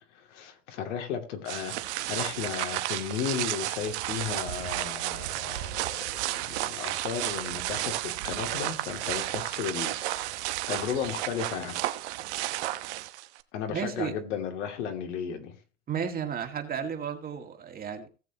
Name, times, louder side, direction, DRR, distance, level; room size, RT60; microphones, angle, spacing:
voice 1, 0.1-10.4 10.7-11.8 13.5-15.5 15.9-16.0, left 7 dB, 70° left, 4 dB, 2.8 m, -35 dB
sound 1, 1.5-13.4, right 16 dB, 60° right, 1.1 m, -32 dB
voice 2, 13.7-14.1 15.9-18.1, right 7 dB, 25° right, 5 dB, 2.1 m, -33 dB
18.0 x 6.9 x 3.0 m, 0.34 s
hypercardioid pair, 120°, 37 cm